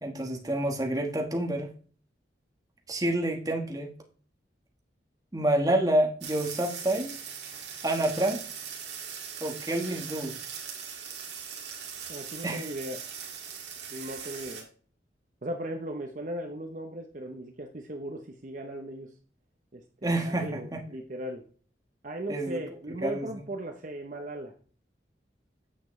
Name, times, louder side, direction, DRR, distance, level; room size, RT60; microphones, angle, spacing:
voice 1, 0.0-1.7 2.9-3.9 5.3-7.2 7.8-8.4 9.4-10.4 12.4-12.7 20.0-20.8 22.3-22.6 23.0-23.4, right 1 dB, 20° right, 1 dB, 1.3 m, -28 dB
sound 1, 6.2-14.6, right 7 dB, 70° right, 2.0 m, -40 dB
voice 2, 12.1-13.0 13.9-14.7 15.4-19.1 19.7-21.4 22.0-24.5, right 1 dB, 45° right, 3 dB, 0.8 m, -37 dB
8.6 x 6.9 x 3.2 m, 0.43 s
head